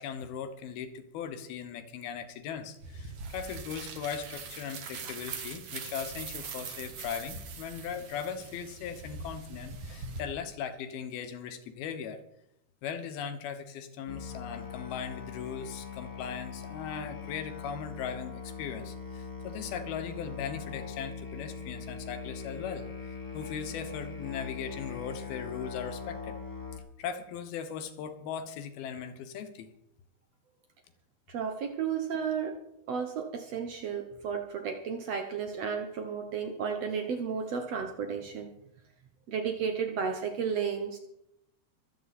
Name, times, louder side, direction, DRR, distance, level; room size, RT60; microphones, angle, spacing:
voice 1, 0.0-12.2 12.8-26.4 27.0-29.7, left 7 dB, 75° left, 8 dB, 3.1 m, -39 dB
sound 1, 2.8-10.2, right 5 dB, 50° right, 2.1 m, -42 dB
Musical instrument, 14.1-26.8, left 5 dB, 20° left, 0.5 m, -41 dB
voice 2, 31.3-32.6 32.9-38.5 39.3-41.0, right 6 dB, 80° right, 5 dB, 1.4 m, -33 dB
24.0 x 8.7 x 4.2 m, 0.80 s
omnidirectional pair, 4.5 m